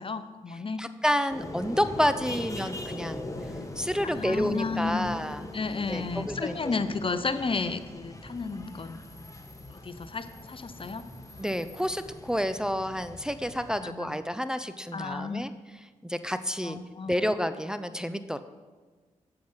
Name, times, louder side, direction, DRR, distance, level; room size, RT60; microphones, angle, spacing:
voice 1, 0.0-0.8 4.0-5.1 5.5-9.0 9.7-11.1 13.8-14.1 14.9-15.5 16.6-17.3, left 4 dB, 40° left, 12 dB, 0.7 m, -32 dB
voice 2, 0.8-3.3 3.8-5.5 5.9-6.8 11.4-15.5 16.0-16.8 17.1-18.4, equal, 5° right, 11 dB, 0.6 m, -29 dB
sound 1, 1.3-13.8, left 2 dB, 20° left, 1.6 m, -41 dB
8.5 x 7.8 x 5.6 m, 1.4 s
supercardioid pair, 40°, 14 cm